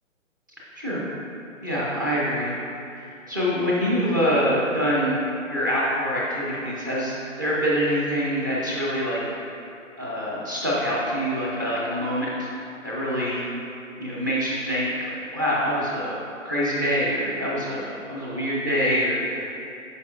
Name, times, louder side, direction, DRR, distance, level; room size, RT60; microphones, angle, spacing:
voice 1, 1.6-2.5 3.0-5.2 5.5-9.2 10.0-12.5 12.8-13.4 14.0-16.1 16.4-19.5, equal, 15° right, -7 dB, 0.5 m, -25 dB
9.2 x 5.7 x 2.4 m, 2.6 s
hypercardioid pair, 155°, 40 cm